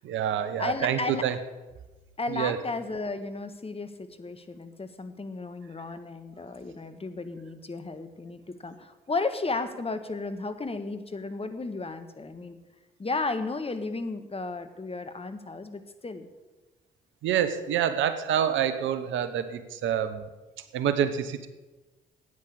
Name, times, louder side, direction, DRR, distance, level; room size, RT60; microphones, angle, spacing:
voice 1, 0.0-1.3 2.3-2.6 17.2-20.3 20.7-21.5, right 9 dB, 70° right, 11 dB, 1.0 m, -27 dB
voice 2, 0.6-1.3 2.2-12.6 13.0-16.3, left 3 dB, 30° left, 9 dB, 1.5 m, -34 dB
9.6 x 9.2 x 8.7 m, 1.1 s
hypercardioid pair, 45°, 21 cm